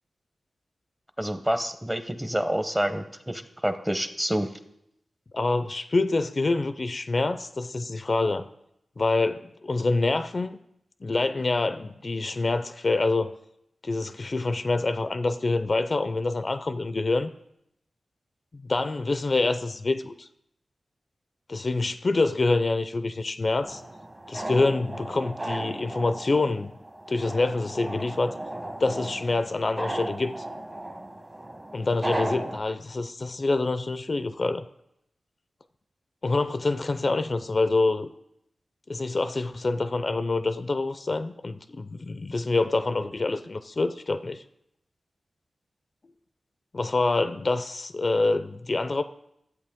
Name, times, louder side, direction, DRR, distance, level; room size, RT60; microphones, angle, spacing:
voice 1, 1.2-4.5, equal, 10° right, 9 dB, 0.8 m, -28 dB
voice 2, 5.3-8.5 9.0-10.6 11.0-13.4 13.8-17.3 18.5-20.3 21.5-23.8 24.3-26.7 27.1-28.4 28.8-30.3 31.7-34.7 36.2-38.1 38.9-44.4 46.7-49.0, left 3 dB, 45° left, 11 dB, 0.4 m, -26 dB
sound 1, 23.6-32.6, right 1 dB, 30° right, 1.2 m, -36 dB
12.5 x 8.1 x 3.6 m, 0.79 s
wide cardioid pair, 70°, 0 cm